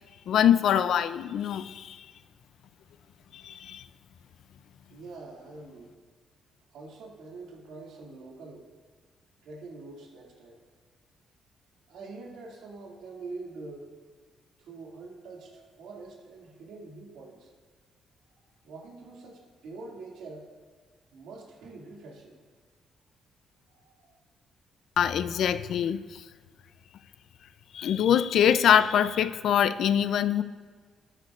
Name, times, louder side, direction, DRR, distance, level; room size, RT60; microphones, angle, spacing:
voice 1, 0.3-2.1 3.3-3.8 25.0-26.2 27.7-30.4, left 9 dB, 70° left, 13 dB, 0.4 m, -24 dB
voice 2, 4.9-6.0 6.7-8.6 9.4-10.6 11.9-13.9 14.6-17.5 18.3-18.4 18.6-20.5 21.1-22.4 23.7-24.2, right 3 dB, 80° right, -2 dB, 2.2 m, -45 dB
18.5 x 8.0 x 2.4 m, 1.5 s
cardioid pair, 90°, 0 cm